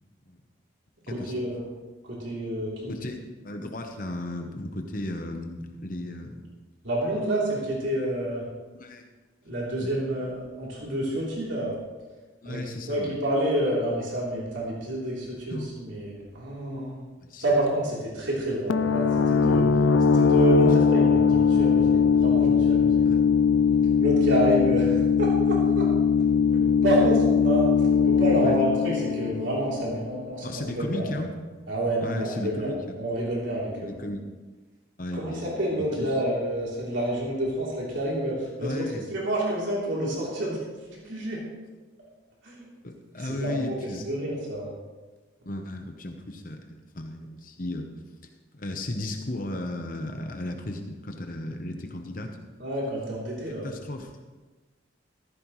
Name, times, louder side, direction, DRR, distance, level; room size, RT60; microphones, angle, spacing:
voice 1, 1.1-1.6 2.0-3.0 6.8-8.5 9.4-11.8 12.4-12.6 12.9-17.0 17.4-19.7 20.1-23.0 24.0-25.9 26.5-31.1 31.7-34.0 35.1-40.6 41.0-41.4 42.4-42.7 43.2-43.8 44.0-44.7 52.6-53.7, right 1 dB, 75° right, -5 dB, 3.4 m, -28 dB
voice 2, 3.4-6.4 8.7-9.1 9.8-9.9 12.4-13.2 15.5-15.7 17.2-17.4 23.0-23.2 28.4-28.6 30.4-31.4 32.0-33.0 33.8-34.3 35.0-35.5 35.8-36.1 38.6-39.1 42.8-44.0 45.4-47.9 48.2-52.4 53.5-54.1, left 1 dB, 45° left, 4 dB, 1.0 m, -35 dB
sound 1, 18.7-30.2, left 6 dB, 85° left, 0.5 m, -21 dB
14.5 x 14.0 x 3.2 m, 1.3 s
head